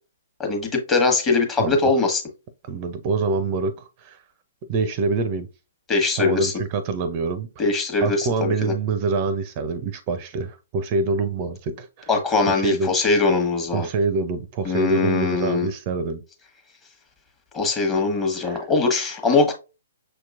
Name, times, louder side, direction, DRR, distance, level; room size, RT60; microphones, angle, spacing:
voice 1, 0.4-2.2 5.9-6.5 7.6-8.7 12.1-13.9 14.6-15.7 17.5-19.5, left 3 dB, 20° left, 1.1 m, -21 dB
voice 2, 1.6-1.9 2.6-4.2 4.7-5.5 6.2-7.5 8.0-12.1 12.5-12.9 13.7-16.2 18.4-18.6, right 4 dB, 35° right, 0.5 m, -25 dB
6.2 x 2.9 x 2.4 m
figure-of-eight pair, 125°, 0 cm